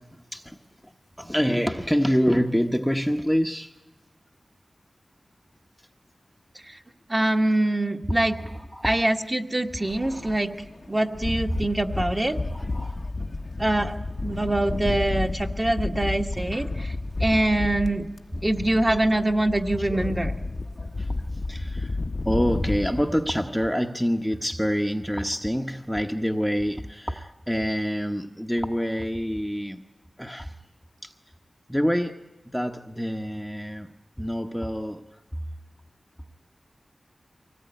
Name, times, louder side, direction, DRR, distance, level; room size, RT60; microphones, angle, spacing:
voice 1, 1.2-3.7 8.1-9.0 10.0-10.4 11.5-11.6 12.5-12.9 18.9-19.1 19.8-20.2 20.8-22.0 22.2-29.9 30.2-30.5 31.0-31.1 31.7-35.0, equal, ahead, 4 dB, 1.1 m, -27 dB
voice 2, 7.1-8.3 8.8-10.5 10.9-12.4 13.6-13.9 14.2-18.0 18.4-20.3, right 1 dB, 25° right, 4 dB, 1.6 m, -24 dB
sound 1, 9.9-23.0, left 2 dB, 55° left, 1.0 m, -31 dB
24.5 x 18.5 x 9.1 m, 1.1 s
wide cardioid pair, 70°, 0 cm